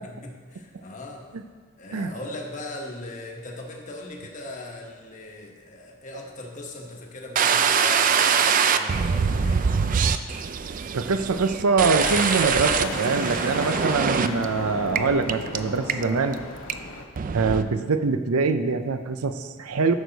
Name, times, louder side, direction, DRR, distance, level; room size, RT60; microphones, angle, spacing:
voice 1, 0.0-1.3 1.8-9.6, left 1 dB, 35° left, 1 dB, 1.2 m, -39 dB
sound 1, 7.4-14.5 15.0-15.1 15.3-15.6 15.9-16.3 16.7-16.8 17.2-17.6, right 6 dB, 40° right, 0.3 m, -23 dB
voice 2, 10.9-16.4 17.3-19.9, right 4 dB, 85° right, 9 dB, 0.6 m, -24 dB
sound 2, 12.0-17.0, left 2 dB, 70° left, 1.2 m, -34 dB
14.0 x 6.4 x 4.0 m, 1.5 s
head